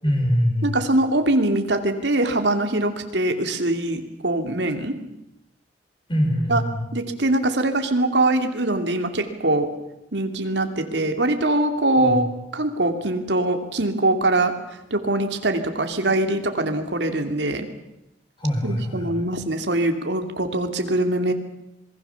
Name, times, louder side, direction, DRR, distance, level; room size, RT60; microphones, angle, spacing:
voice 1, 0.0-0.8 6.1-6.9 12.0-12.2 18.4-19.2, equal, 30° left, 3 dB, 5.9 m, -23 dB
voice 2, 0.6-5.0 6.5-6.6 6.9-9.7 10.1-14.5 14.9-17.7 18.6-21.3, right 2 dB, 85° right, 6 dB, 2.7 m, -22 dB
27.0 x 21.0 x 7.1 m, 0.87 s
head